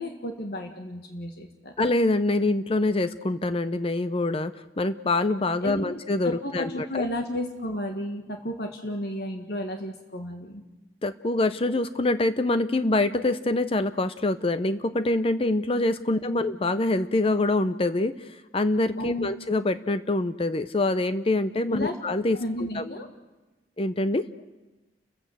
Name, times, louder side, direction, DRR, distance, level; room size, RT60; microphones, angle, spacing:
voice 1, 0.0-1.7 5.6-10.6 19.0-19.3 21.7-22.0 22.3-23.1, left 1 dB, 60° left, 4 dB, 1.8 m, -33 dB
voice 2, 1.8-7.1 11.0-18.1 18.5-22.9 23.8-24.3, left 2 dB, 35° left, 12 dB, 0.7 m, -25 dB
30.0 x 14.5 x 7.9 m, 1.1 s
head